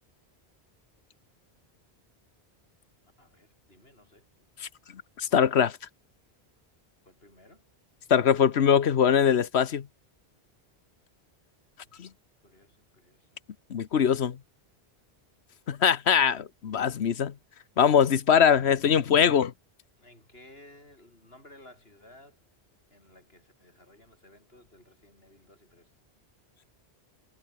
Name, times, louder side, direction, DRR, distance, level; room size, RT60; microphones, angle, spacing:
voice 1, 3.2-4.5 7.1-7.7 11.8-12.0 12.4-13.3 20.0-22.4 22.9-25.9, left 1 dB, 65° left, 7.5 m, -56 dB
voice 2, 5.2-5.8 8.1-9.9 12.0-12.1 13.7-14.4 15.7-17.3 17.8-19.5, left 8 dB, 85° left, 1.3 m, -22 dB
omnidirectional pair, 1.1 m